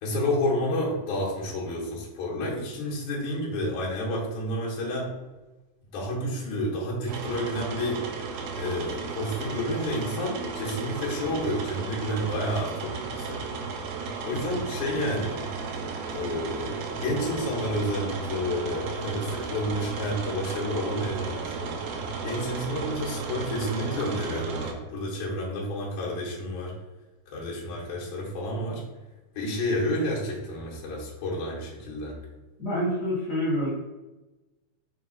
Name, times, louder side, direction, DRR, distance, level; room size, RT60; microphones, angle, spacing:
voice 1, 0.0-5.1 5.9-8.0 8.5-13.5 14.2-15.4 16.1-21.8 22.2-26.7 27.3-28.8 29.4-32.2, left 1 dB, 80° left, -5 dB, 2.6 m, -30 dB
sound 1, 7.1-24.7, right 5 dB, 80° right, 1.5 m, -34 dB
voice 2, 32.6-33.7, equal, 40° left, -8 dB, 1.6 m, -27 dB
5.3 x 2.3 x 3.8 m, 1.1 s
omnidirectional pair, 3.5 m